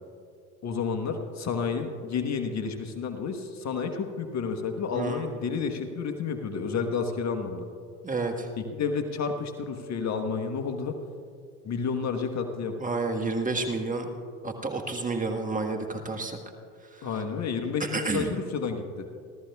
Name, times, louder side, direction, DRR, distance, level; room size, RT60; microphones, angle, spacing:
voice 1, 0.6-7.6 8.6-10.9 11.6-12.7 17.0-19.1, left 5 dB, 35° left, 6 dB, 1.3 m, -30 dB
voice 2, 8.0-8.5 12.8-14.1 14.4-16.4 16.9-17.1 17.8-18.3, right 3 dB, 15° right, 3 dB, 1.4 m, -30 dB
30.0 x 13.0 x 2.4 m, 2.4 s
hypercardioid pair, 85°, 45 cm